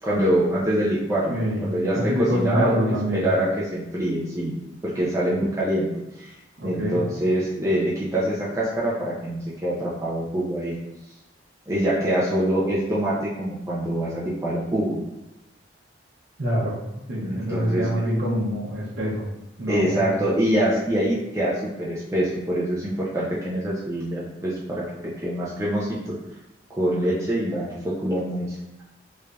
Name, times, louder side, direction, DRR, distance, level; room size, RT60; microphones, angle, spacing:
voice 1, 0.0-4.6 4.8-5.9 6.2-6.3 6.6-10.8 11.7-15.0 17.2-17.9 19.7-24.8 25.2-26.1 26.8-27.8 28.0-28.6, right 1 dB, 15° right, -8 dB, 0.5 m, -25 dB
voice 2, 1.3-3.3 6.6-7.0 16.4-16.7 17.1-19.3 19.6-20.1, equal, 65° right, -7 dB, 0.8 m, -25 dB
3.2 x 2.6 x 3.4 m, 0.94 s
head